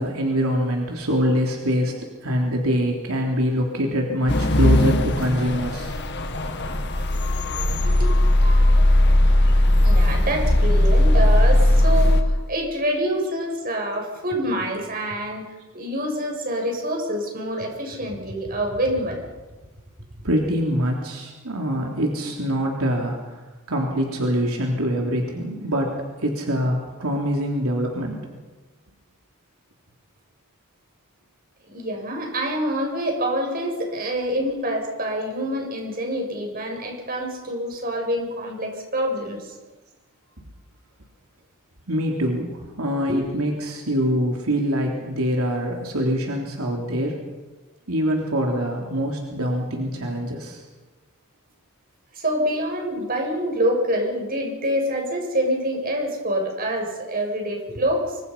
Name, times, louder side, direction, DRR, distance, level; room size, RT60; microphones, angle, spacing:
voice 1, 0.0-1.9 2.2-6.0 20.2-23.3 23.7-25.9 26.2-28.2 41.9-47.2 47.9-50.6, equal, 80° right, 0 dB, 3.6 m, -24 dB
sound 1, 4.3-12.2, left 1 dB, 50° left, 2.0 m, -18 dB
voice 2, 9.8-15.5 15.7-19.2 31.7-39.5 43.1-43.3 52.1-58.2, equal, 40° right, 1 dB, 7.2 m, -26 dB
25.5 x 25.0 x 5.6 m, 1.2 s
head